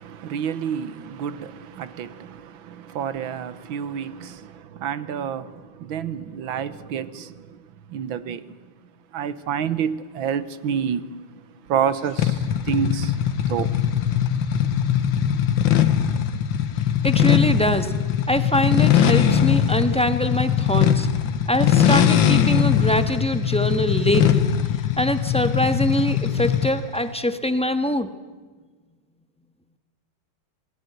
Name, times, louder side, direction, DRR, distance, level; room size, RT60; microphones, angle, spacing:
voice 1, 0.0-7.6 7.9-8.6 9.1-11.1 11.7-13.2 13.5-14.2 14.5-14.9, right 8 dB, 80° right, 1.9 m, -29 dB
sound 1, 12.2-26.9, left 9 dB, 70° left, 1.9 m, -21 dB
voice 2, 17.0-17.9 18.3-21.1 21.5-24.5 25.0-28.1, equal, 5° left, 1.1 m, -23 dB
27.5 x 19.5 x 9.4 m
omnidirectional pair, 2.2 m